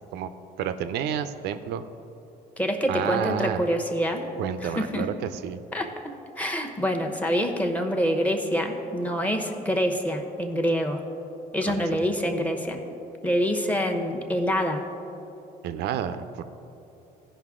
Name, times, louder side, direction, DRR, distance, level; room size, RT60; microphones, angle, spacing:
voice 1, 0.6-1.8 2.9-3.6 4.4-5.6 11.6-11.8 15.6-16.4, right 9 dB, 80° right, 10 dB, 0.5 m, -30 dB
voice 2, 2.6-4.3 4.6-5.1 5.7-11.0 11.5-12.8 13.2-14.8, equal, 10° left, 3 dB, 0.9 m, -26 dB
15.5 x 5.5 x 3.7 m, 3.0 s
cardioid pair, 110°, 17 cm